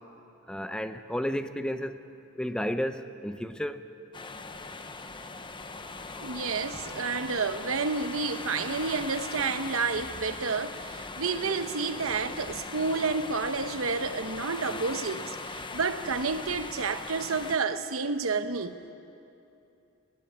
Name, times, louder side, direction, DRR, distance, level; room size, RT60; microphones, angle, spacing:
voice 1, 0.5-2.0 2.4-3.8, equal, 5° left, 0.6 m, -32 dB
sound 1, 4.1-17.6, left 3 dB, 25° left, 0.9 m, -40 dB
voice 2, 6.2-18.8, right 4 dB, 75° right, 1.0 m, -30 dB
20.0 x 17.0 x 9.9 m
head